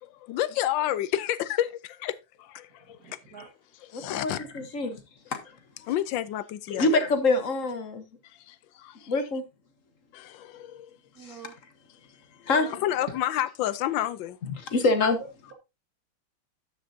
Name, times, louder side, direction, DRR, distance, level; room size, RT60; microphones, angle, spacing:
voice 1, 0.0-3.2 3.9-4.4 5.8-6.9 8.2-9.1 10.1-10.9 12.7-14.4, left 12 dB, 75° left, 1.3 m, -30 dB
voice 2, 2.8-3.5 4.1-4.2 11.1-11.6 12.6-12.8, right 6 dB, 50° right, 1.9 m, -47 dB
voice 3, 3.9-5.0 6.7-8.0 9.1-9.4 11.2-11.3 12.5-12.8 14.4-15.2, left 3 dB, 45° left, 1.3 m, -25 dB
12.5 x 7.0 x 2.7 m
omnidirectional pair, 2.3 m